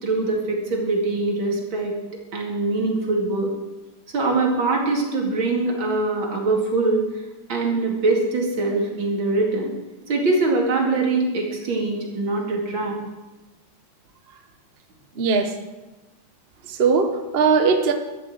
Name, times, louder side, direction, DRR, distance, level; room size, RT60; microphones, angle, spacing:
voice 1, 0.0-1.9 2.3-3.5 4.1-7.1 7.5-9.7 10.1-13.0, right 3 dB, 80° right, 0 dB, 3.2 m, -23 dB
voice 2, 15.2-15.5 16.7-17.9, right 5 dB, 40° right, 6 dB, 1.0 m, -19 dB
12.5 x 8.2 x 7.7 m, 1.1 s
omnidirectional pair, 2.1 m